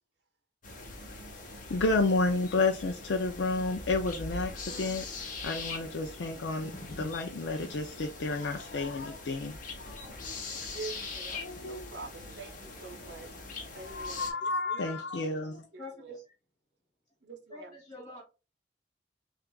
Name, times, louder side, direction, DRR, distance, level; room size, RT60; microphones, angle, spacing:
sound 1, 0.6-14.3, left 3 dB, 45° left, 0.9 m, -42 dB
voice 1, 1.7-5.0 5.4-10.4 11.4-12.0 13.8-15.7, left 3 dB, 75° left, 0.5 m, -31 dB
voice 2, 10.7-13.3 13.7-14.8 15.7-16.1 17.2-17.8, right 3 dB, 65° right, 0.7 m, -45 dB
voice 3, 15.8-16.3 17.5-18.2, left 1 dB, 25° left, 2.3 m, -45 dB
5.8 x 2.4 x 2.3 m
head